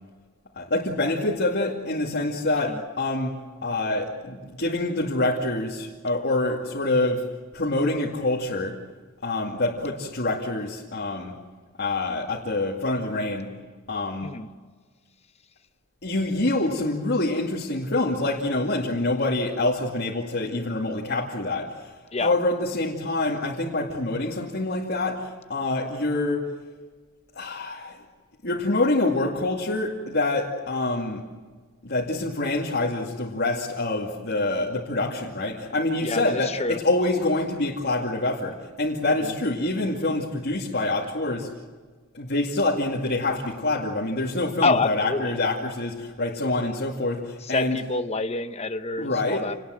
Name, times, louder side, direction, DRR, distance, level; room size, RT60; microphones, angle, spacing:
voice 1, 0.6-3.3 3.6-7.3 7.5-8.8 9.2-11.3 11.8-13.5 13.9-14.3 16.0-21.9 22.2-26.5 27.3-28.0 28.4-31.2 31.8-41.5 42.1-47.8 49.0-49.5, left 2 dB, 50° left, -2 dB, 2.4 m, -26 dB
voice 2, 36.0-36.8 44.6-45.3 47.5-49.6, left 3 dB, 30° left, 10 dB, 0.8 m, -27 dB
29.0 x 19.5 x 7.7 m, 1.4 s
head